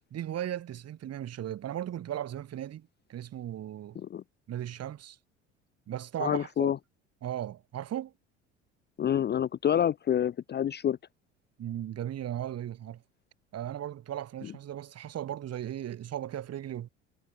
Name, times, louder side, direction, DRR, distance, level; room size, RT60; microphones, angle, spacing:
voice 1, 0.1-4.0 4.5-5.2 5.9-6.7 7.2-8.1 11.6-13.0 13.5-16.9, right 11 dB, 45° right, 2.0 m, -37 dB
voice 2, 6.2-6.8 9.0-11.0, left 9 dB, 30° left, 0.6 m, -27 dB
hypercardioid pair, 65°, 36 cm